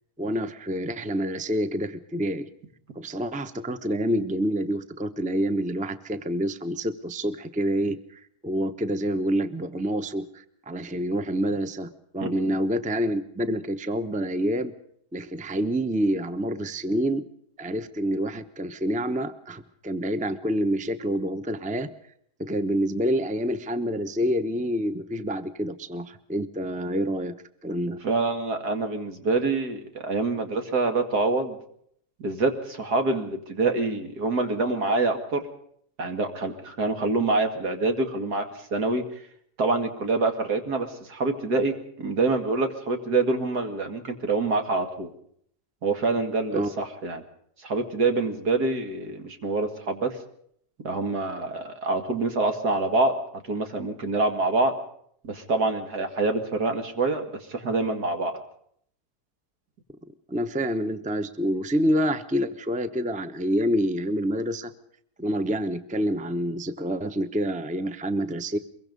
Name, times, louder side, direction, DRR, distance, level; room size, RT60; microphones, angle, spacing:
voice 1, 0.2-2.5 2.9-14.7 15.1-17.3 17.6-21.9 22.4-27.3 27.6-28.0 46.5-46.7 60.3-64.7 65.2-68.6, equal, 5° right, 11 dB, 0.8 m, -27 dB
voice 2, 28.0-31.6 32.2-35.4 36.0-39.0 39.6-45.1 45.8-47.2 47.6-50.2 50.8-53.1 53.5-54.7 55.2-58.3, right 3 dB, 75° right, 6 dB, 2.8 m, -26 dB
23.5 x 22.5 x 5.4 m, 0.67 s
omnidirectional pair, 1.7 m